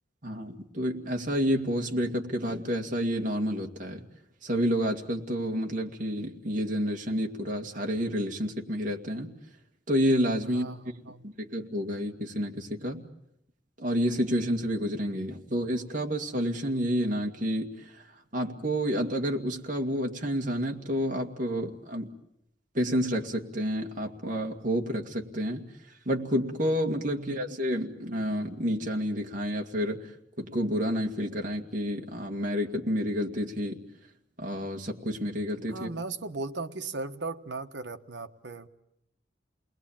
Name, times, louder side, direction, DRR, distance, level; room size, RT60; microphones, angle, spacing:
voice 1, 0.2-4.0 4.4-9.3 9.9-10.7 11.2-13.1 13.8-18.0 18.3-22.1 22.7-25.6 26.1-30.1 30.4-33.8 34.4-35.9, equal, 45° right, 1 dB, 2.2 m, -29 dB
voice 2, 10.5-11.2 27.1-27.4 35.7-38.7, right 3 dB, 75° right, 7 dB, 1.4 m, -37 dB
29.0 x 21.0 x 8.9 m, 0.80 s
head